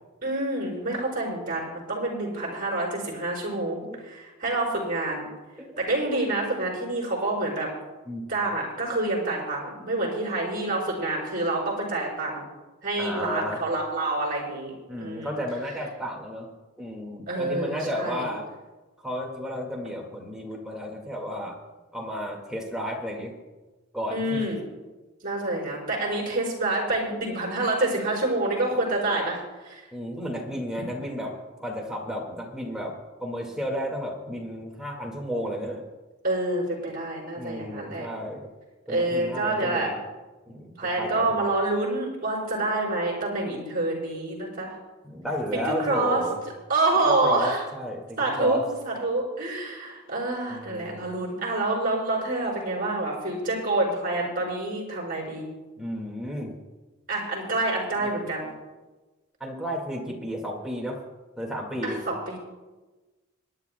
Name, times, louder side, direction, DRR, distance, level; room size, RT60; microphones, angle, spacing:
voice 1, 0.2-5.3 5.8-7.7 8.3-12.5 12.8-15.4 17.3-18.3 24.1-24.6 25.2-29.4 29.6-29.8 36.2-38.1 38.9-39.9 40.8-44.7 45.5-46.2 46.7-47.6 48.2-48.6 48.8-55.5 57.1-58.5 61.8-62.4, right 2 dB, 45° right, -3 dB, 4.8 m, -27 dB
voice 2, 13.0-13.6 14.9-16.5 16.8-18.5 19.0-21.6 21.9-23.3 23.9-24.4 29.9-35.8 37.4-38.5 38.9-40.0 40.5-41.4 45.0-46.4 47.0-48.6 50.5-50.9 55.8-56.5 58.0-58.1 59.4-61.0 61.4-62.0, equal, 5° right, -1 dB, 1.9 m, -33 dB
26.0 x 11.0 x 2.3 m, 1.2 s
head